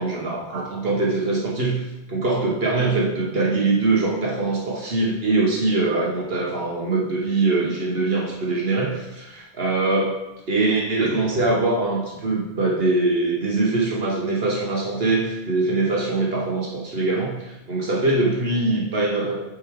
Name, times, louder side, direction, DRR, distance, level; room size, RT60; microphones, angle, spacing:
voice 1, 0.0-1.8 2.1-10.2 10.5-19.3, right 3 dB, 55° right, -3 dB, 1.2 m, -23 dB
7.5 x 4.8 x 3.5 m, 1.0 s
omnidirectional pair, 1.2 m